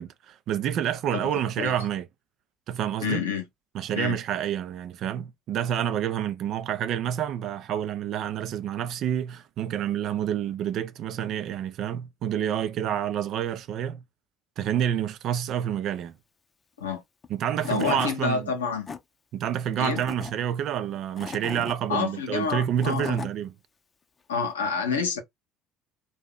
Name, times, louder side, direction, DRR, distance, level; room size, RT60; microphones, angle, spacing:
voice 1, 0.0-2.1 2.7-3.2 3.7-14.0 14.6-16.2 17.3-18.5 19.3-23.5, right 10 dB, 50° right, 0.4 m, -28 dB
voice 2, 3.0-3.4 3.9-4.2 16.8-17.0 17.7-18.9 19.8-20.0 21.9-23.2 24.3-25.2, left 5 dB, 80° left, 0.7 m, -28 dB
Tools / Wood, 17.2-17.3 17.6-18.2 18.6-19.0 19.7-20.3 20.9-21.8 22.5-23.3, left 5 dB, 30° left, 0.6 m, -37 dB
2.7 x 2.2 x 3.7 m
figure-of-eight pair, 60°, 0 cm